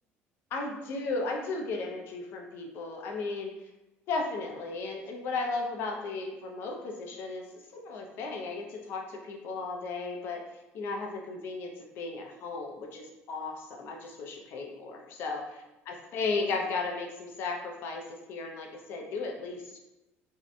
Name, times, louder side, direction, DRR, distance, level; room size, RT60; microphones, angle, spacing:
voice 1, 0.5-3.5 4.1-7.5 7.7-10.4 10.7-11.7 12.0-19.8, left 3 dB, 55° left, 1 dB, 0.4 m, -35 dB
2.6 x 2.1 x 2.5 m, 0.99 s
cardioid pair, 150°, 5 cm